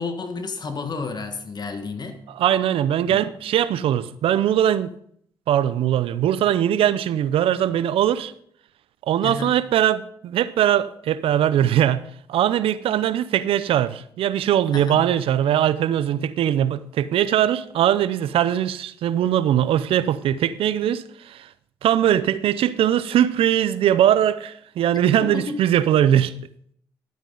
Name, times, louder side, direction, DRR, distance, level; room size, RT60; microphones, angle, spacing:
voice 1, 0.0-2.3 3.1-3.2 9.2-9.6 14.7-15.1 25.2-25.6, left 4 dB, 45° left, 1.5 m, -31 dB
voice 2, 2.4-5.0 5.5-8.3 9.1-12.0 12.3-21.5 21.8-26.3, right 11 dB, 70° right, 0.6 m, -21 dB
12.0 x 8.9 x 3.9 m
supercardioid pair, 50°, 10 cm